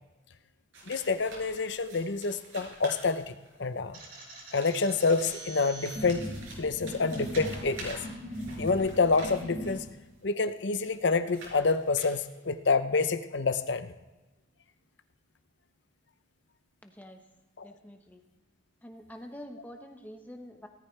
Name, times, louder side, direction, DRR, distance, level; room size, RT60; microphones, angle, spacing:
sound 1, 0.7-3.7 4.4-9.9 10.5-12.5, right 2 dB, 85° right, 5.3 m, -47 dB
voice 1, 0.9-4.0 4.5-6.3 6.6-8.0 8.6-9.8 10.2-13.9 17.6-17.7, left 4 dB, 60° left, 11 dB, 0.7 m, -28 dB
sound 2, 3.9-9.7, equal, 45° right, 4.3 m, -40 dB
voice 2, 16.8-17.2 17.6-18.2 18.8-20.7, equal, 10° left, 4 dB, 1.1 m, -46 dB
17.5 x 13.5 x 3.3 m, 1.1 s
head